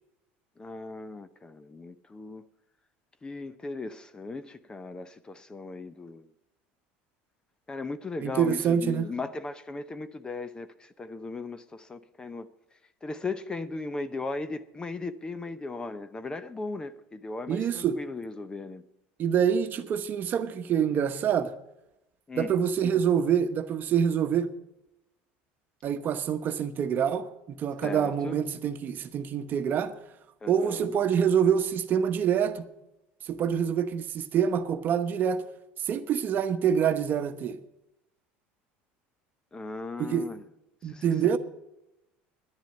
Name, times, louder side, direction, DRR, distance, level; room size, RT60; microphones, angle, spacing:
voice 1, 0.6-2.5 3.2-6.3 7.7-12.5 13.0-18.8 22.3-22.6 27.8-28.4 30.4-30.9 39.5-40.4 40.8-41.3, left 3 dB, 20° left, 0.6 m, -37 dB
voice 2, 8.2-9.1 17.5-18.0 19.2-21.5 22.4-24.5 25.8-29.9 30.5-32.6 33.3-35.4 35.8-37.6 40.0-40.3 40.8-41.4, right 8 dB, 40° right, 1.0 m, -26 dB
10.5 x 10.5 x 7.7 m
supercardioid pair, 115°, 5 cm